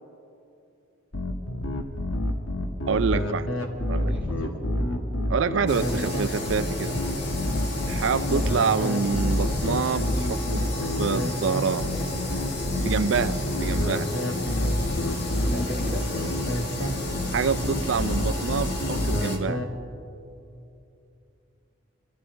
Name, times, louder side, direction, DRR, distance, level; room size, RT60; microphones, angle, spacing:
sound 1, 1.1-19.6, left 1 dB, 85° left, 1.4 m, -28 dB
voice 1, 2.9-3.5 3.9-4.1 5.3-7.0 7.9-10.7 11.0-11.9 12.8-14.1 17.3-19.6, right 5 dB, 70° right, 14 dB, 0.5 m, -27 dB
voice 2, 4.1-4.8 5.3-5.5 5.9-6.2 8.3-8.6 15.4-16.2, equal, 10° right, -4 dB, 2.4 m, -37 dB
sound 2, 5.7-19.4, left 1 dB, 55° left, 1.5 m, -31 dB
25.0 x 13.0 x 3.6 m, 2.7 s
head